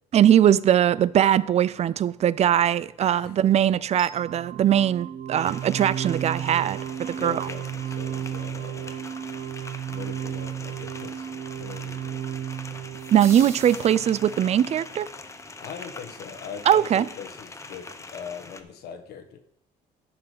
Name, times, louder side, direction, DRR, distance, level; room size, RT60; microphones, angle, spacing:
voice 1, 0.1-7.5 13.1-15.1 16.7-17.1, right 10 dB, 40° right, 0.4 m, -21 dB
voice 2, 3.2-3.6 7.1-8.9 9.9-11.3 11.6-12.3 15.6-19.4, left 7 dB, 70° left, 1.3 m, -41 dB
sound 1, 4.0-14.9, right 10 dB, 55° right, 0.9 m, -34 dB
sound 2, 5.4-18.6, left 3 dB, 15° left, 0.8 m, -43 dB
sound 3, 13.0-14.6, right 2 dB, 15° right, 1.6 m, -41 dB
11.0 x 6.0 x 5.0 m
cardioid pair, 110°, 17 cm